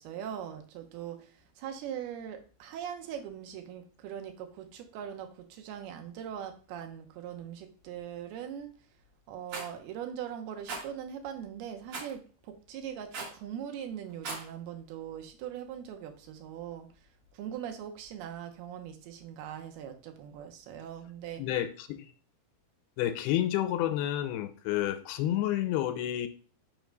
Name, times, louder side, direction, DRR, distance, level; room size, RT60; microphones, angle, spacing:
voice 1, 0.0-8.7 9.3-16.9 17.3-21.4, right 9 dB, 85° right, 5 dB, 2.8 m, -41 dB
Rattle, 9.5-9.7 10.7-10.8 11.9-12.1 13.1-13.4 14.1-14.5, right 4 dB, 50° right, 2.2 m, -38 dB
voice 2, 21.4-22.1 23.0-26.3, left 12 dB, 90° left, 10 dB, 2.6 m, -30 dB
6.1 x 3.4 x 5.2 m, 0.38 s
omnidirectional pair, 4.6 m